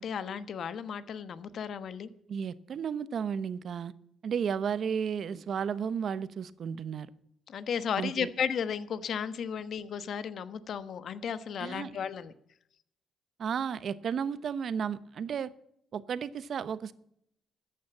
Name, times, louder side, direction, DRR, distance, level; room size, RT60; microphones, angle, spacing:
voice 1, 0.0-2.1 7.5-12.3, left 7 dB, 60° left, 1.1 m, -34 dB
voice 2, 2.3-3.9 4.2-7.1 8.0-8.3 11.6-12.0 13.4-15.5 15.9-16.9, right 7 dB, 60° right, 0.9 m, -33 dB
14.0 x 9.3 x 9.1 m
cardioid pair, 90°, 0 cm